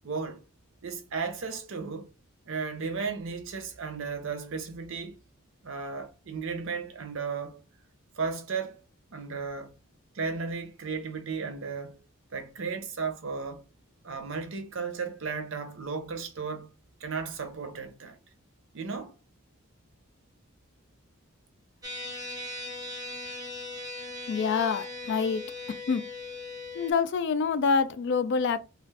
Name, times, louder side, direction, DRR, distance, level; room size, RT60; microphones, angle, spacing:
voice 1, 0.0-0.4 0.8-2.1 2.5-5.2 5.6-7.6 8.2-8.8 9.1-9.7 10.1-12.0 12.3-13.6 14.0-16.7 17.0-18.2 18.7-19.1, right 5 dB, 60° right, 0.6 m, -34 dB
sound 1, 21.8-26.9, left 2 dB, 15° right, 0.6 m, -39 dB
voice 2, 24.3-25.4 25.9-26.0 26.7-28.6, left 5 dB, 50° left, 0.3 m, -26 dB
2.4 x 2.4 x 3.2 m
head